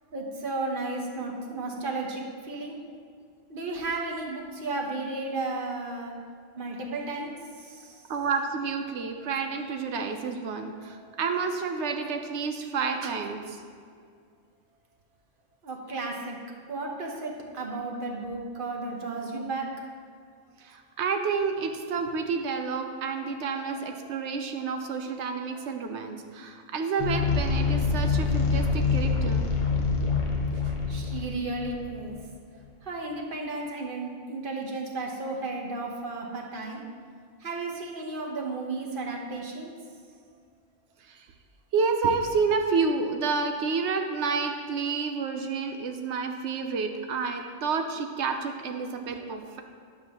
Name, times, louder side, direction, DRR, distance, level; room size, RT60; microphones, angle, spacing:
voice 1, 0.1-2.8 3.5-6.1 6.6-8.0 15.6-16.4 16.7-19.7 30.9-32.2 32.8-36.8 37.4-39.7, right 3 dB, 45° right, 0 dB, 1.1 m, -33 dB
voice 2, 8.1-13.6 20.6-29.5 30.6-30.7 41.1-41.3 41.7-49.6, right 5 dB, 70° right, 5 dB, 0.9 m, -29 dB
sound 1, 27.0-32.2, left 4 dB, 35° left, 0.6 m, -26 dB
9.7 x 7.1 x 2.9 m, 2.2 s
omnidirectional pair, 1.3 m